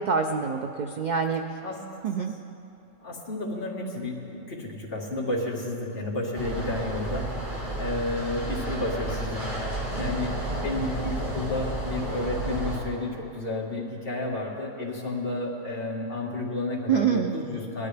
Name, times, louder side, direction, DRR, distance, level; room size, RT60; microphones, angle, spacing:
voice 1, 0.0-1.4 2.0-2.3 16.9-17.3, right 6 dB, 65° right, 5 dB, 0.4 m, -25 dB
voice 2, 3.0-7.3 7.7-9.5 9.9-17.9, left 2 dB, 45° left, -3 dB, 1.8 m, -31 dB
sound 1, 6.3-12.8, right 1 dB, 25° right, 2.7 m, -32 dB
19.5 x 12.0 x 3.4 m, 2.9 s
omnidirectional pair, 1.3 m